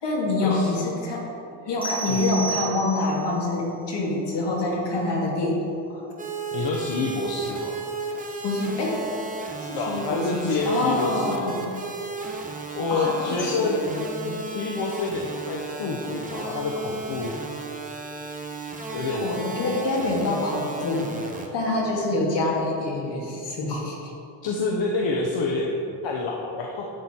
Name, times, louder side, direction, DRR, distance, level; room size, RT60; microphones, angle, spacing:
voice 1, 0.0-1.3 1.7-5.6 5.9-6.1 8.4-9.0 9.6-11.6 12.9-14.4 19.1-24.1, left 2 dB, 70° left, -3 dB, 2.4 m, -26 dB
sound 1, 1.8-3.3, right 4 dB, 10° left, 2.6 m, -32 dB
sound 2, 6.2-21.5, right 3 dB, 20° right, 1.0 m, -34 dB
voice 2, 6.5-7.8 9.7-11.6 12.7-13.8 14.5-17.4 18.9-19.3 24.4-26.9, left 3 dB, 90° left, -1 dB, 1.1 m, -27 dB
11.0 x 8.4 x 4.4 m, 2.8 s
wide cardioid pair, 160°, 43 cm